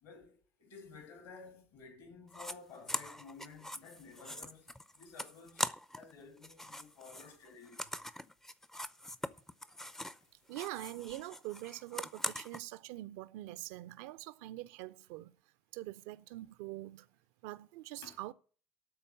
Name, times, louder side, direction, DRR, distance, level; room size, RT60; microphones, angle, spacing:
voice 1, 0.0-5.7 5.9-8.0 18.0-18.2, left 4 dB, 60° left, 2.5 m, -54 dB
sound 1, 2.3-2.6 2.9-6.1 6.4-10.2 10.5-12.6, left 1 dB, 5° left, 0.6 m, -42 dB
voice 2, 10.5-15.3 15.7-17.1 17.4-18.3, right 17 dB, 60° right, 0.5 m, -44 dB
13.0 x 4.3 x 8.4 m
figure-of-eight pair, 60°, 7 cm